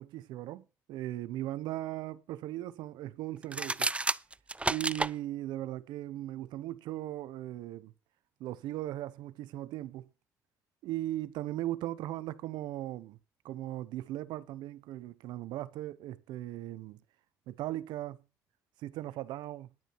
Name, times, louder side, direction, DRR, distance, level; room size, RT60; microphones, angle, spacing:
voice 1, 0.0-3.9 4.7-7.9 8.4-10.1 10.8-13.2 13.4-17.0 17.5-18.2 18.8-19.7, right 14 dB, 85° right, 0.9 m, -38 dB
sound 1, 3.4-5.1, right 2 dB, 15° right, 0.5 m, -31 dB
10.5 x 9.2 x 4.5 m
supercardioid pair, 60°, 7 cm